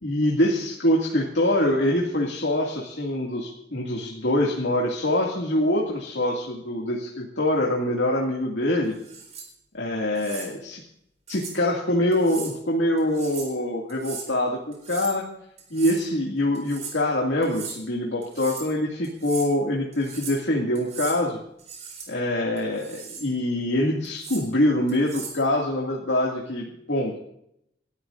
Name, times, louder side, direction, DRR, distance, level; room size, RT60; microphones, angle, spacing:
voice 1, 0.0-8.9 9.7-10.8 11.3-15.3 15.7-21.4 22.1-27.2, left 1 dB, 85° left, -1 dB, 2.2 m, -24 dB
sound 1, 9.0-9.5 10.1-10.5 11.3-11.6 12.1-12.5 13.0-13.5 13.9-14.3 14.7-15.2 15.6-16.1 16.5-17.0 17.4-17.8 18.2-18.7 19.0-19.5 19.9-20.4 20.7-21.2 21.6-22.1 22.6-23.3 24.0-24.4 24.9-25.4, right 6 dB, 35° right, 4.2 m, -38 dB
28.5 x 13.0 x 2.6 m, 0.76 s
head